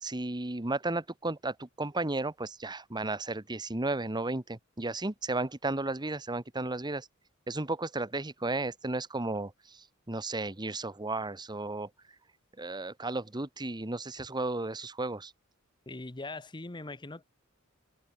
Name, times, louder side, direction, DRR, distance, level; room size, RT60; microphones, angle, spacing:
voice 1, 0.0-7.1 7.5-11.9 12.6-15.3, right 2 dB, 20° right, 1.3 m, -34 dB
voice 2, 15.9-17.2, left 2 dB, 20° left, 1.0 m, -41 dB
head